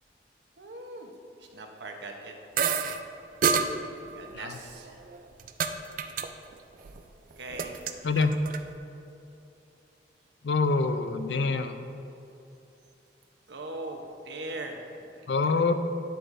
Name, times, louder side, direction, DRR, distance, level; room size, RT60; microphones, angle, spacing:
voice 1, 0.6-1.1 1.4-2.3 3.7-5.0 7.4-7.8 13.5-15.2, right 2 dB, 80° right, 3 dB, 0.9 m, -40 dB
sound 1, 2.6-3.0 3.4-3.7 4.7-5.7 6.0-6.3 6.5-7.0 7.3-8.6, right 6 dB, 50° right, 0.4 m, -28 dB
voice 2, 10.4-11.8 15.3-15.7, left 4 dB, 80° left, 9 dB, 0.4 m, -25 dB
9.7 x 7.7 x 2.6 m, 2.8 s
head